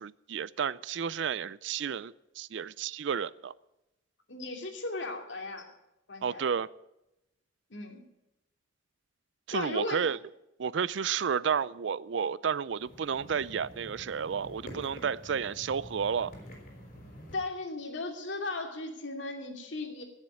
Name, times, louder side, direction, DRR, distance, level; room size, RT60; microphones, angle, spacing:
voice 1, 0.0-3.5 6.2-6.7 9.5-10.2 10.6-16.3, right 7 dB, 70° right, 0.4 m, -31 dB
voice 2, 4.3-5.7 6.1-6.4 7.7-8.0 9.5-10.1 17.3-20.0, left 2 dB, 70° left, 2.6 m, -36 dB
sound 1, 12.7-17.3, equal, 45° left, 4.9 m, -48 dB
16.5 x 7.4 x 9.1 m
head